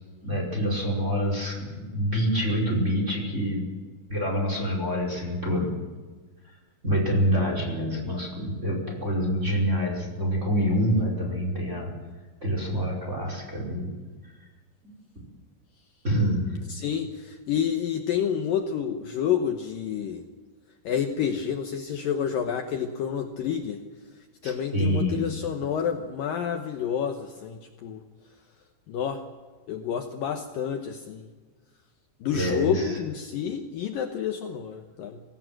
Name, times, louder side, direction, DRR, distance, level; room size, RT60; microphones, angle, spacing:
voice 1, 0.2-3.7 4.1-5.7 6.8-11.9 12.4-13.9 16.0-16.6 24.4-25.3 32.3-33.0, equal, 15° right, 0 dB, 5.0 m, -26 dB
voice 2, 16.7-20.2 20.8-23.8 24.4-28.0 28.9-29.2 29.7-31.3 32.2-35.2, left 8 dB, 90° left, 5 dB, 1.9 m, -29 dB
23.5 x 17.0 x 7.7 m, 1.4 s
omnidirectional pair, 5.6 m